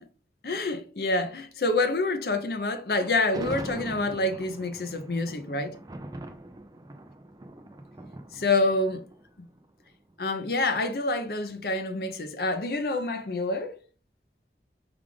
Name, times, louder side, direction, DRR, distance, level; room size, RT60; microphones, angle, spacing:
voice 1, 0.4-5.7 8.3-9.0 10.2-13.8, left 2 dB, 55° left, 0.6 m, -27 dB
Thunder, 2.9-10.1, right 1 dB, 20° right, 0.4 m, -42 dB
4.9 x 2.5 x 3.4 m
head